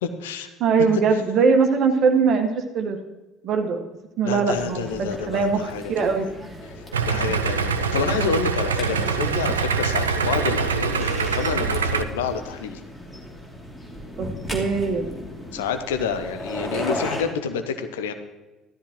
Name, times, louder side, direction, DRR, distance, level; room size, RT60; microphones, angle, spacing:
voice 1, 0.0-0.5 4.2-6.1 7.0-12.8 15.5-18.1, left 6 dB, 70° left, 8 dB, 0.8 m, -28 dB
voice 2, 0.6-3.0 3.4-3.9 4.2-6.3 7.1-7.2 14.2-15.1, right 5 dB, 45° right, 5 dB, 1.4 m, -21 dB
sound 1, 4.5-17.2, left 1 dB, 15° left, 2.9 m, -36 dB
Idling, 6.9-12.0, right 5 dB, 75° right, 0.5 m, -24 dB
14.5 x 12.5 x 3.1 m, 1.1 s
figure-of-eight pair, 55°, 0 cm